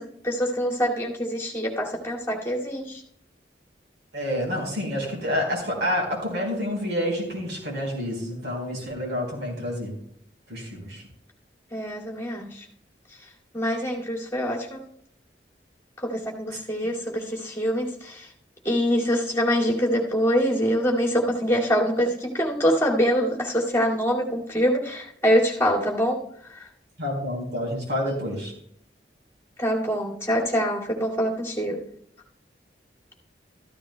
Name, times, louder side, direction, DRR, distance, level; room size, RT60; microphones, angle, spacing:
voice 1, 0.0-3.0 11.7-12.7 13.5-14.8 16.0-18.3 18.6-26.2 26.4-26.7 29.6-31.8, equal, 15° left, -3 dB, 2.3 m, -25 dB
voice 2, 4.1-9.9 10.5-11.0 27.0-28.5, equal, 85° right, -1 dB, 4.3 m, -28 dB
14.0 x 13.5 x 2.2 m, 0.69 s
head